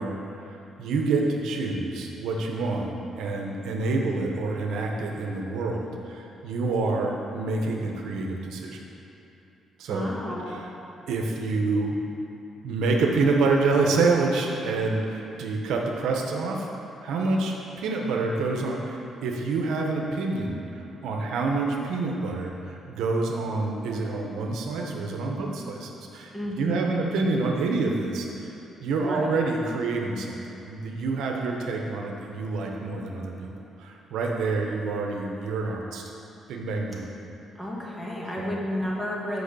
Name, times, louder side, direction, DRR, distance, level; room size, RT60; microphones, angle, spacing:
voice 1, 0.0-8.8 9.8-10.1 10.5-10.7 11.1-12.0 12.6-16.7 17.0-26.3 26.6-28.5 28.8-33.5 33.8-36.0 36.5-37.1 38.4-38.5, right 3 dB, 85° right, 0 dB, 0.9 m, -27 dB
voice 2, 9.9-10.6 26.3-27.0 29.0-29.3 37.6-39.4, left 1 dB, 10° left, -5 dB, 1.9 m, -32 dB
6.4 x 5.5 x 6.9 m, 3.0 s
cardioid pair, 90°, 0 cm